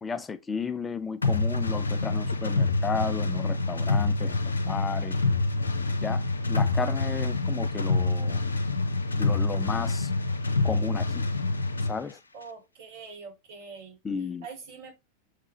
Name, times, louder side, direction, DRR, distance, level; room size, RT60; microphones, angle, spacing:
voice 1, 0.0-5.2 6.0-8.4 9.2-10.1 10.6-11.3 11.8-12.2 14.0-14.5, left 5 dB, 15° left, 0.4 m, -33 dB
sound 1, 1.2-12.0, left 3 dB, 75° left, 0.8 m, -26 dB
voice 2, 12.3-14.0 14.4-14.9, right 5 dB, 55° right, 4.4 m, -44 dB
6.4 x 4.8 x 3.1 m
figure-of-eight pair, 90°, 0 cm